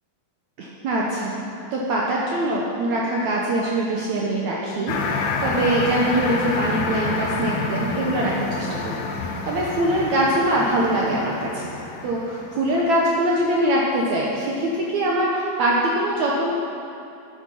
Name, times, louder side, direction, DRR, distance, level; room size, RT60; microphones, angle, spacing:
voice 1, 0.6-1.3 1.7-11.7 12.0-16.5, right 1 dB, 70° right, -3 dB, 1.8 m, -23 dB
sound 1, 4.9-12.9, left 4 dB, 80° left, 1.9 m, -28 dB
12.0 x 8.1 x 5.5 m, 2.7 s
omnidirectional pair, 4.4 m